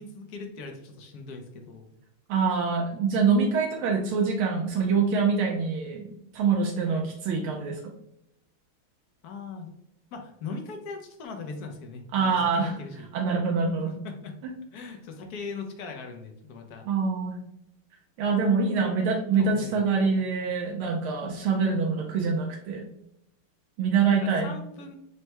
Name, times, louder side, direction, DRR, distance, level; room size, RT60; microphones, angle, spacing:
voice 1, 0.0-1.9 6.9-7.1 9.2-9.8 10.1-13.1 14.0-14.3 14.7-16.8 18.8-18.9 19.3-20.2 24.2-25.0, left 4 dB, 65° left, 4 dB, 1.0 m, -40 dB
voice 2, 2.3-7.8 12.1-12.7 13.1-13.9 16.9-17.4 18.2-22.9 23.8-24.6, right 5 dB, 85° right, 0 dB, 1.5 m, -25 dB
6.5 x 2.2 x 2.9 m, 0.76 s
omnidirectional pair, 2.3 m